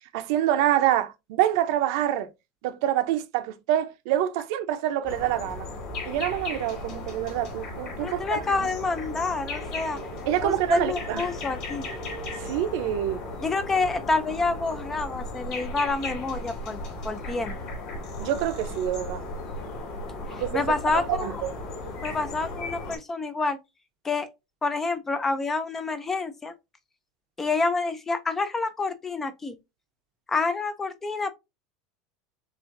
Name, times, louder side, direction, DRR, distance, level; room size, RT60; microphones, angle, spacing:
voice 1, 0.1-2.3 2.6-5.7 6.1-8.7 10.3-11.2 12.4-13.2 18.2-19.2 20.3-20.6 20.9-21.5, right 12 dB, 60° right, 0.6 m, -26 dB
sound 1, 5.0-23.0, left 2 dB, 40° left, 2.1 m, -36 dB
voice 2, 8.0-10.0 10.4-11.8 13.4-17.6 20.3-21.4 22.0-23.6 24.0-24.3 24.6-26.5 27.4-29.6 30.3-31.3, left 3 dB, 10° left, 0.4 m, -28 dB
6.4 x 2.5 x 2.5 m
supercardioid pair, 170°, 3 cm